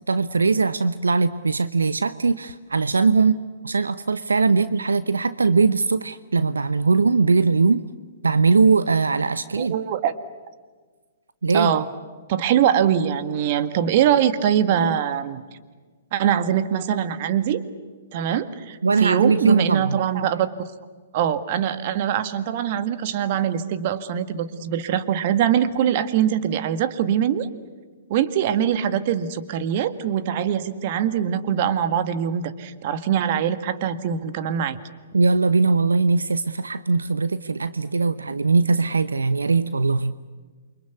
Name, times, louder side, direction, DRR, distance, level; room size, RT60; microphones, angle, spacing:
voice 1, 0.1-3.4 3.6-7.8 8.2-9.7 11.4-11.7 18.8-20.0 35.1-40.3, right 4 dB, 80° right, 14 dB, 0.8 m, -20 dB
voice 2, 9.5-10.1 11.5-11.9 12.3-15.4 16.1-17.6 18.1-20.6 21.1-27.5 28.1-34.8, right 9 dB, 45° right, 12 dB, 1.8 m, -23 dB
28.5 x 24.5 x 8.3 m, 1.5 s
figure-of-eight pair, 120°, 0 cm